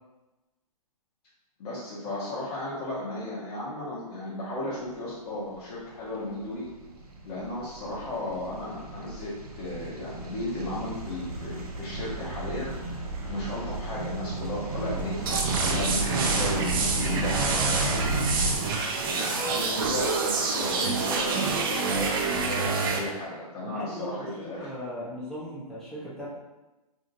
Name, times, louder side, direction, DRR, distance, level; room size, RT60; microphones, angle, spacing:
voice 1, 1.6-6.7 7.2-12.8 13.3-18.2 19.1-24.7, left 1 dB, 40° left, -8 dB, 0.9 m, -35 dB
sound 1, 5.7-18.6, right 2 dB, 75° right, 0.7 m, -33 dB
sound 2, 15.3-23.0, right 4 dB, 35° right, 0.4 m, -27 dB
voice 2, 23.6-26.3, equal, 5° left, -9 dB, 0.7 m, -38 dB
2.7 x 2.7 x 2.6 m, 1.1 s
hypercardioid pair, 145°, 19 cm